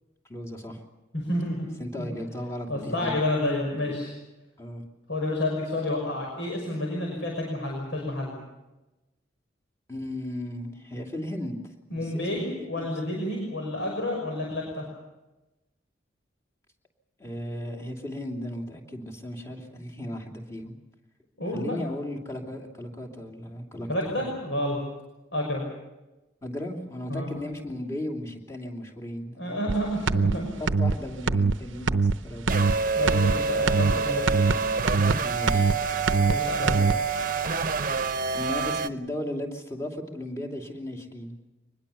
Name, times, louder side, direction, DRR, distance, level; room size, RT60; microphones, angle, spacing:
voice 1, 0.3-0.8 1.8-3.2 4.6-4.8 9.9-13.2 17.2-20.7 21.5-24.3 26.4-29.7 30.6-32.7 35.2-35.8 38.3-41.4, left 1 dB, 15° left, 1 dB, 2.9 m, -36 dB
voice 2, 1.1-1.7 2.0-2.1 2.7-4.1 5.1-8.3 11.9-14.9 21.4-21.8 23.9-24.8 25.3-25.6 27.1-27.3 29.4-30.5 32.9-34.3 36.3-36.8, left 1 dB, 75° left, 0 dB, 5.9 m, -29 dB
sound 1, 29.7-29.8 30.1-30.3 30.7-30.9 31.3-31.5 31.9-32.1 32.5-32.8 33.1-33.3 33.7-33.9 34.3-34.5 34.9-35.1 35.5-35.7 36.1-36.3 36.7-36.9, right 4 dB, 90° right, 0.8 m, -22 dB
sound 2, 32.5-38.9, right 5 dB, 45° right, 0.9 m, -27 dB
25.0 x 20.5 x 7.1 m, 1.0 s
head